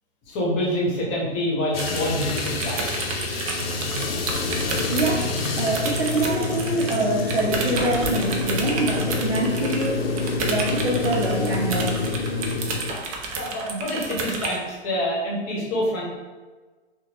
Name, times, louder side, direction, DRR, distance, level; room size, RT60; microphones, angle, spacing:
voice 1, 0.3-2.8 13.4-16.1, left 1 dB, 30° left, -4 dB, 0.8 m, -26 dB
sound 1, 1.7-12.9, left 3 dB, 65° left, 0.5 m, -27 dB
sound 2, 1.8-7.0 7.3-14.6, right 3 dB, 35° right, 0.4 m, -31 dB
voice 2, 4.9-5.2 5.6-10.1 10.5-12.0, right 2 dB, 75° right, -1 dB, 0.7 m, -25 dB
sound 3, 7.6-9.2 11.9-14.8, right 1 dB, 15° right, 1.0 m, -39 dB
2.8 x 2.2 x 2.8 m, 1.3 s
figure-of-eight pair, 105°, 33 cm